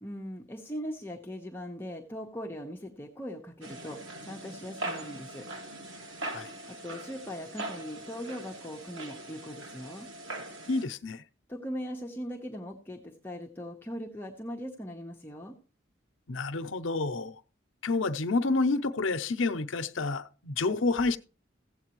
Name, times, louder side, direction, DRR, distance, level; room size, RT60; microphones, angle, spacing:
voice 1, 0.0-5.4 6.7-10.1 11.5-15.6, equal, 10° left, 0.9 m, -40 dB
sound 1, 3.6-10.8, right 2 dB, 85° right, 1.9 m, -41 dB
voice 2, 10.7-11.2 16.3-17.3 17.8-21.2, left 3 dB, 85° left, 0.7 m, -29 dB
15.5 x 8.1 x 3.0 m
head